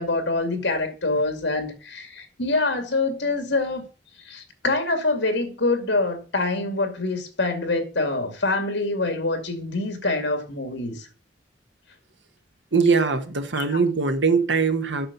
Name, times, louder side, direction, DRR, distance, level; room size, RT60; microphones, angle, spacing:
voice 1, 0.0-3.9 4.2-11.1 13.6-13.8, left 2 dB, 85° left, 2.3 m, -25 dB
voice 2, 12.7-15.1, right 4 dB, 85° right, 1.4 m, -21 dB
8.7 x 5.7 x 6.9 m
head